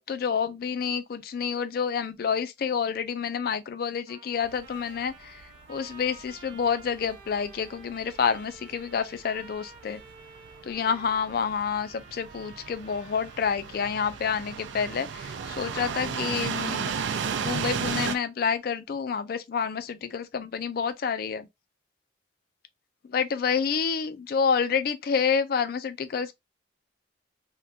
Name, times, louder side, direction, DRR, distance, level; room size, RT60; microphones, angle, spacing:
voice 1, 0.0-10.0 10.6-16.9 17.4-21.5 23.0-26.3, left 6 dB, 55° left, 0.3 m, -28 dB
Trumpet, 4.1-15.7, right 3 dB, 30° right, 0.7 m, -51 dB
sound 1, 4.4-18.2, right 6 dB, 75° right, 0.4 m, -35 dB
3.5 x 2.2 x 2.6 m
head